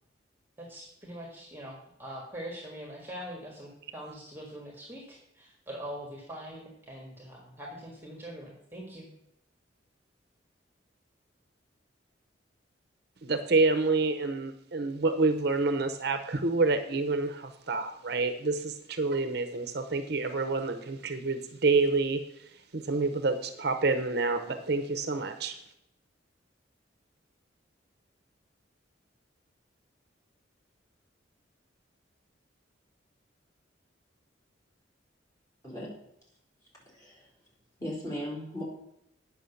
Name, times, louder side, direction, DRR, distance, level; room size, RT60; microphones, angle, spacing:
voice 1, 0.6-9.1, equal, 10° right, -1 dB, 1.7 m, -43 dB
voice 2, 13.2-22.2 22.7-25.6, right 3 dB, 60° right, 8 dB, 0.8 m, -28 dB
voice 3, 36.9-37.3 37.8-38.6, equal, 20° left, -5 dB, 4.2 m, -37 dB
9.2 x 5.9 x 7.0 m, 0.81 s
head